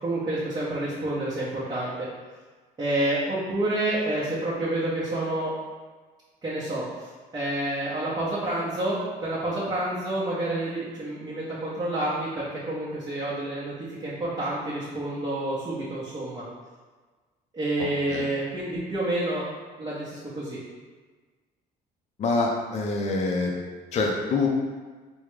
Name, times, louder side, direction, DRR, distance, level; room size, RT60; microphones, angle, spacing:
voice 1, 0.0-2.1 2.8-5.5 6.4-7.1 7.3-16.4 17.5-19.5 19.8-20.6, right 1 dB, 25° right, -10 dB, 0.9 m, -29 dB
voice 2, 22.2-23.5 23.9-24.5, left 3 dB, 40° left, -1 dB, 0.5 m, -25 dB
3.6 x 2.2 x 3.1 m, 1.4 s
cardioid pair, 110°, 17 cm